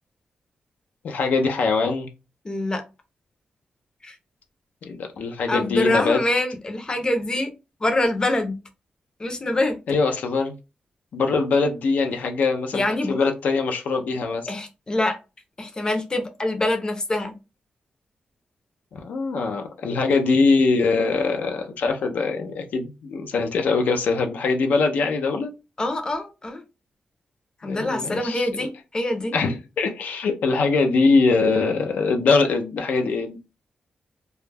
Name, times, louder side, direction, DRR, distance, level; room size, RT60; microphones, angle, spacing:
voice 1, 1.0-2.1 4.8-6.2 9.9-10.5 11.1-14.5 18.9-25.5 27.6-28.5 29.3-33.4, left 4 dB, 80° left, 4 dB, 0.4 m, -22 dB
voice 2, 2.4-2.8 4.0-4.1 5.5-7.5 7.8-8.6 9.2-9.8 12.7-13.3 14.5-15.2 15.6-17.3 25.8-26.6 27.6-29.4, left 1 dB, 30° left, 5 dB, 0.5 m, -25 dB
2.2 x 2.0 x 3.2 m, 0.28 s
wide cardioid pair, 105°, 3 cm